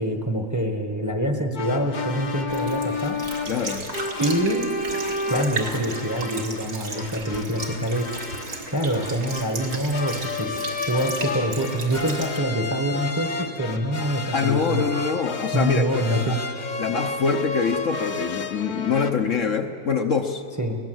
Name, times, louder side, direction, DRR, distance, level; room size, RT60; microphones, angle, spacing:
voice 1, 0.0-3.2 4.2-4.7 5.3-8.1 8.7-10.6 10.9-14.8 15.5-16.4 20.6-20.8, right 1 dB, 15° right, 5 dB, 1.1 m, -25 dB
sound 1, 1.5-19.1, left 3 dB, 35° left, 0.9 m, -32 dB
Sink (filling or washing) / Liquid, 2.5-12.4, right 3 dB, 70° right, 2.7 m, -35 dB
voice 2, 3.5-3.9 14.3-16.4 16.8-20.4, left 5 dB, 55° left, 5 dB, 1.1 m, -24 dB
22.5 x 18.0 x 7.8 m, 2.6 s
omnidirectional pair, 1.7 m